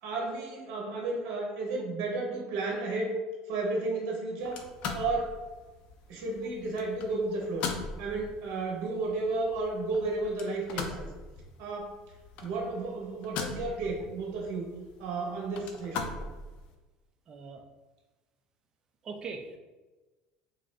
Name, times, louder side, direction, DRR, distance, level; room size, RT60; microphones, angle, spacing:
voice 1, 0.0-3.1 3.5-4.7 4.9-5.3 6.1-7.7 8.0-11.1 11.6-11.9 12.4-14.7 15.0-16.2, right 3 dB, 75° right, 0 dB, 1.0 m, -32 dB
sound 1, 4.4-16.7, left 4 dB, 60° left, 0.5 m, -41 dB
voice 2, 17.3-17.6 19.0-19.6, right 4 dB, 35° right, 4 dB, 0.5 m, -40 dB
3.5 x 2.6 x 3.2 m, 1.2 s
cardioid pair, 125°, 2 cm